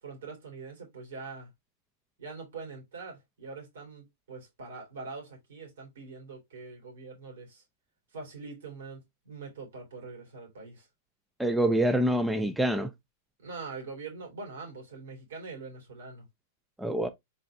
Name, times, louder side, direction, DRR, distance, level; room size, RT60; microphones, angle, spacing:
voice 1, 0.0-1.5 2.2-7.6 8.1-10.9 13.4-16.2, right 4 dB, 80° right, 2.7 m, -43 dB
voice 2, 11.4-12.9 16.8-17.1, right 1 dB, 5° right, 0.4 m, -26 dB
4.2 x 3.7 x 2.2 m
hypercardioid pair, 125°, 0 cm